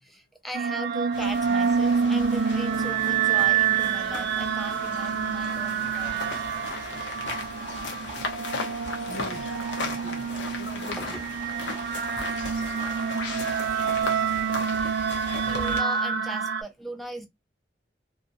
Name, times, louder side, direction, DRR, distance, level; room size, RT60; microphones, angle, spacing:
voice 1, 0.0-6.4 8.5-8.7 11.0-11.2 12.1-12.4 15.4-17.3, right 1 dB, ahead, 0.4 m, -39 dB
sound 1, 0.5-16.6, right 7 dB, 65° right, 0.3 m, -27 dB
sound 2, 1.1-15.8, left 3 dB, 90° left, 0.7 m, -37 dB
Livestock farm animals working animals, 5.4-14.0, right 3 dB, 45° right, 0.8 m, -46 dB
voice 2, 6.4-6.8 9.0-10.3 10.5-11.2 12.8-12.9 14.5-14.7, left 1 dB, 65° left, 0.9 m, -42 dB
2.7 x 2.1 x 2.4 m
head